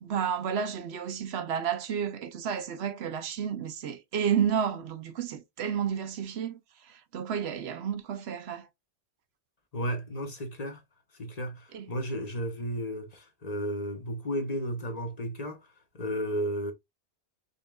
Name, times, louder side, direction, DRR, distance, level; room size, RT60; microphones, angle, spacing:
voice 1, 0.0-6.6 6.9-8.7 11.7-11.8, right 8 dB, 75° right, 0.9 m, -31 dB
voice 2, 9.7-10.8 11.1-16.7, equal, 40° left, 0.9 m, -33 dB
5.3 x 3.3 x 2.2 m
omnidirectional pair, 1.1 m